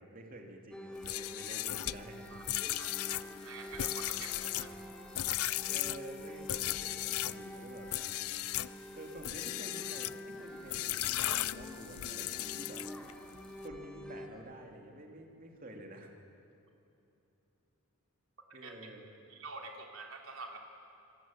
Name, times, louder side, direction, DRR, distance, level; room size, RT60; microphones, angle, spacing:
voice 1, 0.0-2.3 5.7-7.9 8.9-12.8 13.6-16.1 18.5-19.0, right 1 dB, 40° right, 1 dB, 3.1 m, -49 dB
sound 1, 0.7-14.3, left 1 dB, 5° left, 2.2 m, -47 dB
sound 2, 1.0-7.4 7.9-8.7 9.2-10.2 10.7-13.1, left 15 dB, 80° left, 0.5 m, -36 dB
voice 2, 2.8-4.8 18.5-18.8 19.3-20.6, right 3 dB, 70° right, 2 dB, 3.2 m, -47 dB
26.5 x 20.0 x 9.1 m, 2.8 s
head